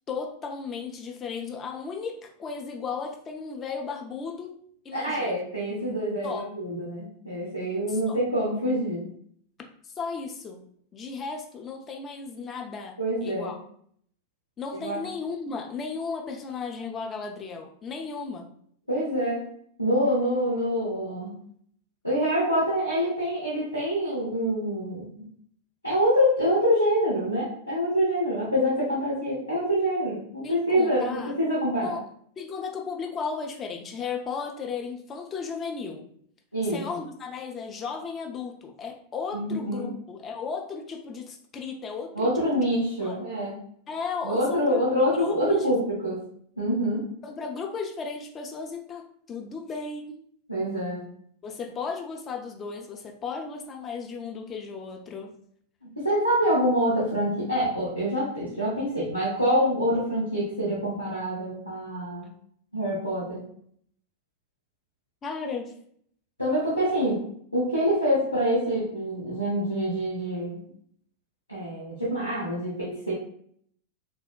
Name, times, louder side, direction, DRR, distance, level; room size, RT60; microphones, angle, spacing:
voice 1, 0.1-4.6 4.8-5.4 6.2-6.5 7.9-8.2 9.8-10.6 10.9-13.6 14.6-18.5 30.4-31.3 31.8-32.0 32.4-36.0 36.6-42.7 43.0-43.2 43.9-45.7 47.2-50.2 51.4-55.3 65.2-65.7, left 5 dB, 25° left, 3 dB, 0.4 m, -35 dB
voice 2, 4.9-9.1 13.0-13.5 14.7-15.0 18.9-19.5 19.8-21.4 22.0-25.1 25.8-32.0 36.5-36.8 39.3-39.9 42.1-43.5 44.2-46.2 46.6-47.1 50.5-51.1 55.8-62.3 62.7-63.4 66.4-67.2 67.5-70.6 71.5-73.1, equal, 90° left, -8 dB, 0.7 m, -26 dB
3.5 x 2.1 x 2.2 m, 0.64 s
figure-of-eight pair, 90°, 0 cm